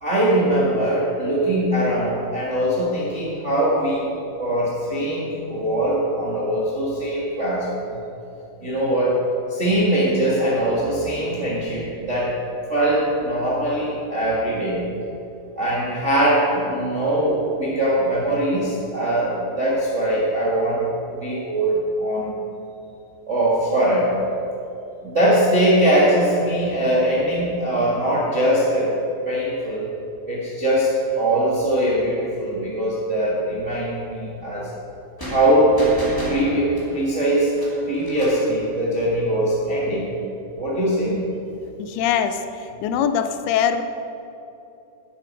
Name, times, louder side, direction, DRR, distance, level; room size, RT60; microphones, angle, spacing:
voice 1, 0.0-4.1 4.4-7.9 8.6-9.2 9.5-12.3 12.7-14.8 15.6-22.3 23.3-24.2 25.0-28.9 29.2-29.9 30.3-34.7 35.3-35.8 36.3-37.5 37.8-40.2 40.6-41.2, right 1 dB, 60° right, -7 dB, 0.7 m, -21 dB
sound 1, 35.2-38.5, equal, 20° left, 0.5 m, -33 dB
voice 2, 41.8-42.4 42.8-43.8, left 8 dB, 85° left, 9 dB, 2.5 m, -22 dB
11.5 x 7.6 x 5.2 m, 2.9 s
omnidirectional pair, 4.5 m